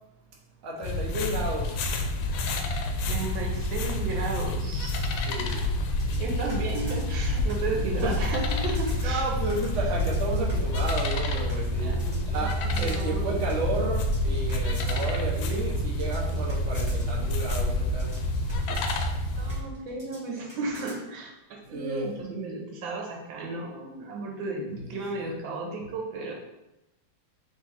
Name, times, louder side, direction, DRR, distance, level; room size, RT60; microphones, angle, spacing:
voice 1, 0.6-1.9 2.3-2.5 5.3-5.6 7.7-8.2 9.0-12.0 12.3-18.2 18.5-18.6 21.7-22.1 24.8-25.3, right 2 dB, 50° right, -3 dB, 1.0 m, -32 dB
sound 1, 0.8-19.6, left 1 dB, 85° left, 1.3 m, -28 dB
voice 2, 3.1-5.0 6.1-9.2 11.8-13.3 19.4-26.4, right 3 dB, 85° right, 0 dB, 1.6 m, -34 dB
sound 2, 5.0-21.0, right 1 dB, 20° right, 0.8 m, -49 dB
3.8 x 3.1 x 4.1 m, 0.93 s
omnidirectional pair, 2.1 m